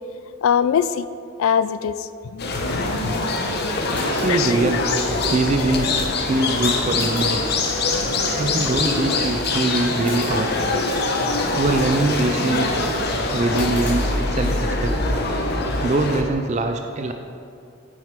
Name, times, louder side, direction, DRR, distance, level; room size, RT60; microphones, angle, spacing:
voice 1, 0.4-1.1 1.4-3.1 4.3-4.6 4.9-5.0 9.8-9.9 13.5-13.7, left 8 dB, 85° left, 13 dB, 0.3 m, -23 dB
sound 1, 2.4-16.2, left 2 dB, 55° left, 0.9 m, -23 dB
sound 2, 3.9-4.5 7.0-7.5 10.0-10.7 13.5-13.9, left 1 dB, 10° left, 2.4 m, -39 dB
voice 2, 4.0-4.9 5.3-7.4 8.4-10.5 11.6-12.8 13.3-15.0 15.8-17.1, right 2 dB, 35° right, 6 dB, 0.4 m, -23 dB
9.0 x 6.6 x 5.0 m, 2.4 s
head